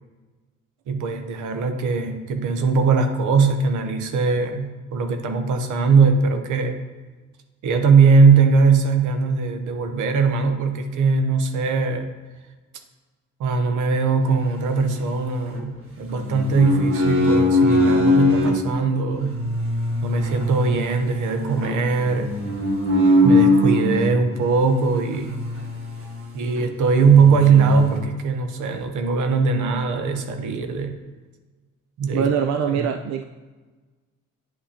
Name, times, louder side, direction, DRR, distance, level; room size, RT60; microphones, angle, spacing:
voice 1, 0.9-6.8 7.6-12.1 13.4-19.4 20.0-22.4 23.2-25.4 26.3-31.0 32.0-32.3 32.7-32.9, right 4 dB, 80° right, 6 dB, 0.9 m, -20 dB
sound 1, 14.4-15.6 16.1-18.6 19.1-24.2 25.0-26.2 26.6-26.7 27.0-28.0, left 1 dB, 45° right, 1.3 m, -21 dB
voice 2, 32.1-33.2, right 8 dB, 65° right, 5 dB, 0.5 m, -23 dB
9.4 x 5.8 x 2.8 m, 1.3 s
cardioid pair, 90°, 30 cm